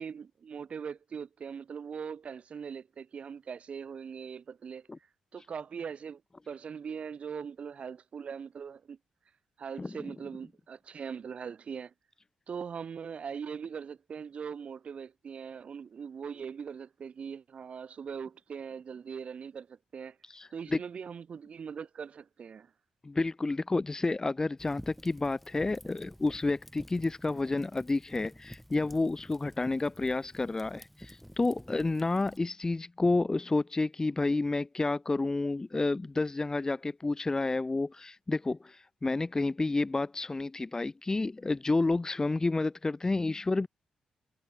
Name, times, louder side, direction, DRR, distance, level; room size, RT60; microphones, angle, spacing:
voice 1, 0.0-4.9 5.3-6.2 6.5-9.0 9.6-11.9 12.5-20.2 20.5-22.7, right 6 dB, 60° right, 3.3 m, -41 dB
voice 2, 20.3-20.8 23.0-43.7, left 3 dB, 25° left, 1.1 m, -30 dB
Fire, 24.6-32.4, equal, ahead, 5.1 m, -50 dB
supercardioid pair, 55°, 2 cm